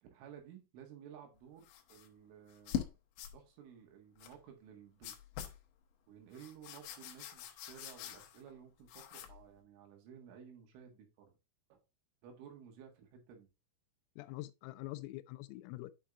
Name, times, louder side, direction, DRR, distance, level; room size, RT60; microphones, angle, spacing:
voice 1, 0.0-2.9 3.2-5.1 6.1-11.4 11.7-11.8 12.2-13.5, right 8 dB, 75° right, 4.0 m, -55 dB
sound 1, 1.6-2.1 2.5-2.9 3.2-3.4 4.2-4.4 5.0-5.6 6.3-8.5 8.8-9.4, left 10 dB, 75° left, 2.8 m, -43 dB
voice 2, 14.2-15.9, left 18 dB, 90° left, 3.3 m, -45 dB
9.9 x 5.6 x 2.4 m
omnidirectional pair, 5.9 m